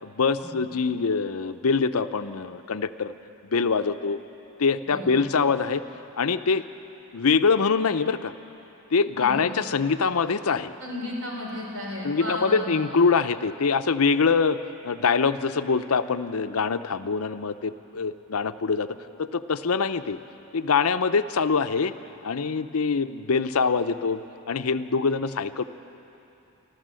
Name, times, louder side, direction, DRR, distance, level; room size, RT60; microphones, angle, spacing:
voice 1, 0.0-3.1 3.4-4.2 4.6-5.8 6.2-6.7 7.1-8.3 8.9-10.7 12.0-20.2 20.5-21.9 22.2-24.2 24.5-25.6, left 5 dB, 75° left, 11 dB, 0.6 m, -24 dB
voice 2, 4.9-5.3 9.2-9.5 10.8-13.0, left 1 dB, 70° right, -2 dB, 4.3 m, -34 dB
26.5 x 13.0 x 7.6 m, 2.9 s
head